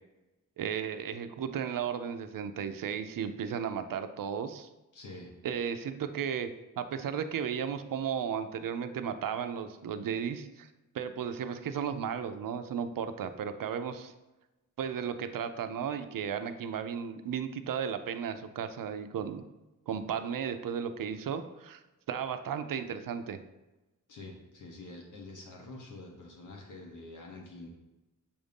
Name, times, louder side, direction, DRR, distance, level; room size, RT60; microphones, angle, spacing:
voice 1, 0.6-4.7 5.4-6.5 6.8-10.7 10.9-14.1 14.8-19.4 19.9-21.8 22.1-23.4, right 7 dB, 75° right, 9 dB, 0.5 m, -34 dB
voice 2, 4.9-5.3 24.1-27.7, left 2 dB, 65° left, -1 dB, 1.0 m, -46 dB
7.1 x 2.6 x 5.2 m, 1.0 s
wide cardioid pair, 110°, 33 cm